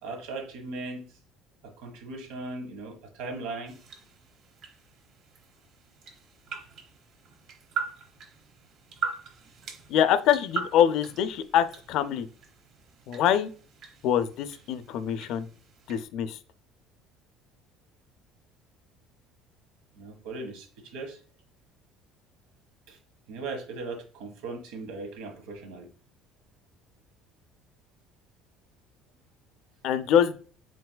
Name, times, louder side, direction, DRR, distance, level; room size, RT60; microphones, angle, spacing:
voice 1, 0.0-1.0 1.6-3.8 20.0-21.2 22.9-23.0 23.3-25.9, right 3 dB, 85° right, 5 dB, 1.1 m, -38 dB
sound 1, 3.7-16.0, right 6 dB, 50° right, 0.9 m, -41 dB
voice 2, 9.9-12.3 13.1-13.5 14.0-15.5 15.9-16.4 29.8-30.4, left 9 dB, 60° left, 12 dB, 0.4 m, -24 dB
4.5 x 4.1 x 2.2 m, 0.40 s
cardioid pair, 150°, 0 cm